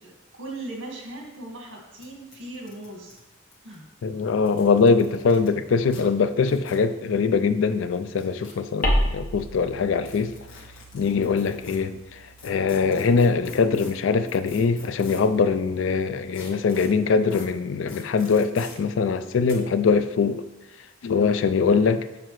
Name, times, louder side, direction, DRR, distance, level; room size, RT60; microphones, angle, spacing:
voice 1, 0.0-3.2 3.6-3.9 21.2-21.5, right 2 dB, 70° right, 1.6 m, -39 dB
sound 1, 1.2-1.3 1.5-1.6 2.0-2.1 2.3-3.7 4.3-5.5 5.9-6.0 6.5-6.8 7.9-8.8 10.0-11.8 12.4-15.4 16.3-16.9 17.3-17.5 17.9-18.8 19.5-19.6, left 3 dB, 90° left, 1.4 m, -44 dB
voice 2, 4.0-10.3 10.9-20.4 21.0-22.1, left 5 dB, 65° left, 0.4 m, -22 dB
sound 2, 8.8-13.7, equal, 45° left, 1.0 m, -31 dB
6.6 x 5.0 x 3.1 m
head